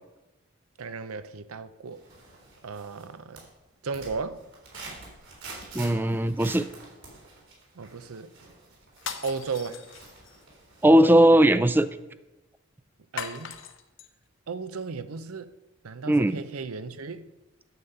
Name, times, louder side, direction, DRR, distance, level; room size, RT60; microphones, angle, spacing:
voice 1, 0.8-2.0 2.6-3.5 3.8-4.4 7.8-8.3 9.2-9.8 13.1-13.6 14.5-15.5 15.8-17.3, right 4 dB, 85° right, 0.6 m, -35 dB
sound 1, 1.9-3.1 3.4-11.3 11.7-11.8, right 3 dB, 60° right, 3.7 m, -47 dB
voice 2, 5.7-6.7 10.8-11.9 16.1-16.4, right 1 dB, 10° right, 0.3 m, -18 dB
sound 2, 9.0-10.4 13.2-14.1, left 7 dB, 60° left, 0.8 m, -39 dB
9.5 x 8.0 x 5.5 m
head